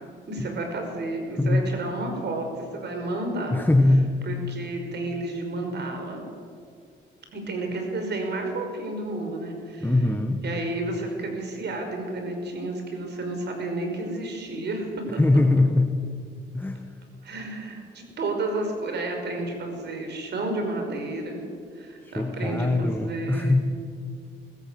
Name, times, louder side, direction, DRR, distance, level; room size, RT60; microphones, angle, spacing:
voice 1, 0.3-3.5 4.2-6.2 7.3-9.9 10.4-15.2 17.2-21.5 21.7-23.6, right 2 dB, 60° right, 3 dB, 5.5 m, -31 dB
voice 2, 3.5-4.2 9.8-10.4 15.2-15.9 16.5-16.8 22.0-23.7, left 2 dB, 10° left, 6 dB, 1.3 m, -22 dB
21.0 x 14.0 x 9.4 m, 2.2 s
cardioid pair, 90°, 20 cm